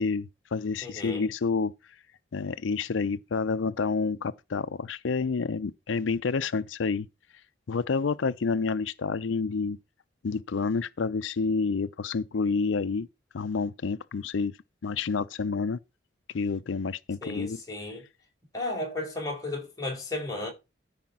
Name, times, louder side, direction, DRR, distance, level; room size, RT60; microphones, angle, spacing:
voice 1, 0.0-1.7 2.3-7.1 7.7-9.8 10.2-13.1 13.3-14.5 14.8-15.8 16.3-17.6, left 4 dB, 90° left, 0.5 m, -29 dB
voice 2, 0.8-1.3 17.2-18.0 18.5-20.5, left 2 dB, 20° left, 4.5 m, -34 dB
13.5 x 5.1 x 5.9 m
head